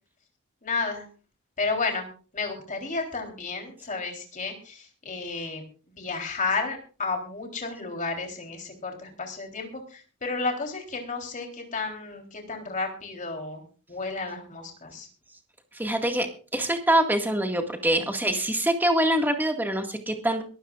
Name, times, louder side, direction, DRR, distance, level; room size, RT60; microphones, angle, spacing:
voice 1, 0.6-1.1 1.6-2.1 2.3-13.6 13.9-15.1, left 4 dB, 35° left, 3 dB, 3.7 m, -32 dB
voice 2, 15.7-16.3 16.5-20.4, right 1 dB, 10° right, 4 dB, 1.9 m, -24 dB
22.5 x 14.5 x 2.5 m, 0.37 s
head